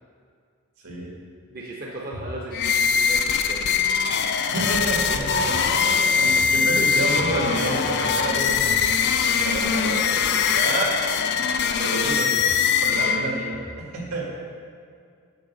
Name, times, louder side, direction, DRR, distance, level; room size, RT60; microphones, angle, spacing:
voice 1, 1.5-3.6 4.5-4.6 5.1-6.9 9.4-9.9 11.6-12.5, right 1 dB, 40° right, -3 dB, 0.7 m, -35 dB
sound 1, 2.5-13.6, left 6 dB, 50° left, 0.3 m, -22 dB
voice 2, 4.5-5.2 6.1-11.0 11.8-12.4 12.8-14.3, right 2 dB, 80° right, -2 dB, 1.8 m, -29 dB
6.7 x 4.8 x 6.3 m, 2.2 s
head